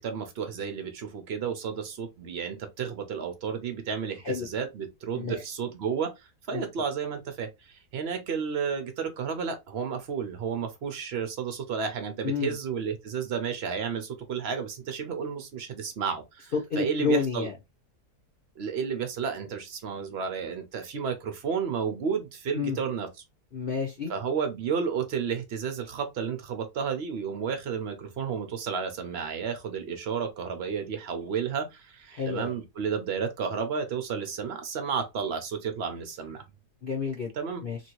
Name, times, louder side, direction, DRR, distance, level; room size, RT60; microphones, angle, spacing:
voice 1, 0.0-17.5 18.6-23.1 24.1-36.4 37.3-37.6, right 6 dB, 65° right, 0.6 m, -32 dB
voice 2, 16.7-17.5 22.5-22.8 23.5-24.1 32.1-32.5 36.8-37.3 37.6-37.8, left 5 dB, 45° left, 0.7 m, -29 dB
3.0 x 2.6 x 2.9 m
omnidirectional pair, 1.8 m